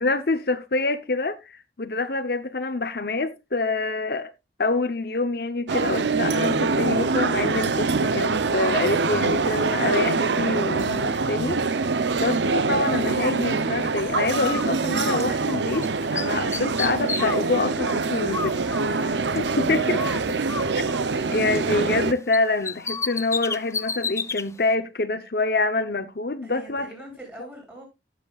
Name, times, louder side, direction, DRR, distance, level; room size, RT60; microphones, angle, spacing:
voice 1, 0.0-4.3 4.6-11.8 12.2-18.6 18.9-20.0 20.8-20.9 21.3-26.9, left 3 dB, 60° left, 0.8 m, -26 dB
sound 1, 5.7-22.1, right 4 dB, 75° right, 0.7 m, -24 dB
Bird, 14.3-15.9 16.1-19.6 19.9-22.0 22.3-24.4, left 4 dB, 15° left, 0.4 m, -32 dB
voice 2, 26.4-27.9, right 1 dB, 10° right, 6.9 m, -43 dB
16.5 x 7.4 x 2.4 m
head